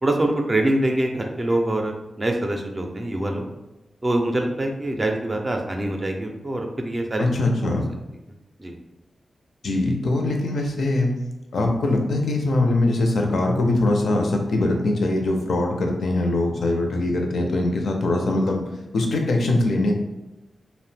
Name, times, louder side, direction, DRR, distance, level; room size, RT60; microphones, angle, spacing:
voice 1, 0.0-3.5 4.0-7.3 7.6-7.8 8.6-8.7, right 1 dB, 25° right, 3 dB, 0.4 m, -24 dB
voice 2, 7.2-7.9 9.6-11.1 11.5-18.6 18.9-19.9, left 2 dB, 80° left, 2 dB, 0.4 m, -22 dB
2.7 x 2.1 x 3.2 m, 0.98 s
wide cardioid pair, 125°, 0 cm